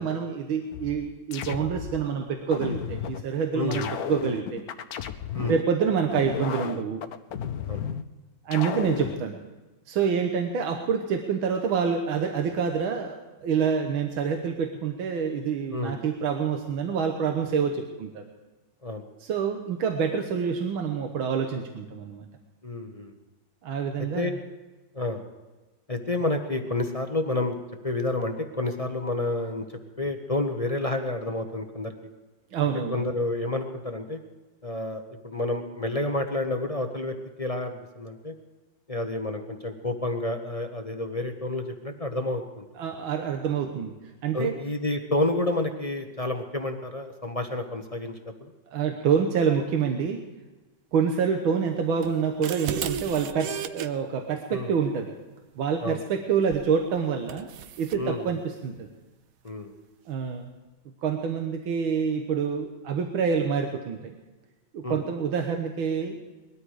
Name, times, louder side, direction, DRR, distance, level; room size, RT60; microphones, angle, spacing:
voice 1, 0.0-3.8 4.1-4.6 5.5-7.0 8.5-9.4 9.9-18.2 19.2-22.3 23.6-24.4 32.5-33.1 42.8-43.9 44.2-44.6 48.7-50.2 50.9-55.1 55.6-57.5 57.8-58.9 60.1-60.5 61.0-64.1 64.7-66.2, right 6 dB, 85° right, 4 dB, 1.9 m, -27 dB
sound 1, 0.7-2.0 2.5-3.2 3.7-5.6 6.1-8.0 8.5-9.2, left 8 dB, 65° left, 1.0 m, -34 dB
voice 2, 3.5-3.9 5.3-5.6 7.7-7.8 15.7-16.0 18.8-19.0 22.6-23.1 24.2-24.4 24.9-25.2 25.9-27.5 27.8-29.7 30.0-31.9 32.9-34.2 34.6-38.3 38.9-42.7 44.3-48.5 54.5-54.7 55.8-56.0 58.0-58.4 59.4-59.7 64.8-65.0, left 2 dB, 30° left, 4 dB, 0.7 m, -29 dB
sound 2, 52.0-53.9 56.5-56.7 57.3-58.0, right 9 dB, 65° right, 0.9 m, -34 dB
20.5 x 13.0 x 4.9 m, 1.2 s
omnidirectional pair, 2.2 m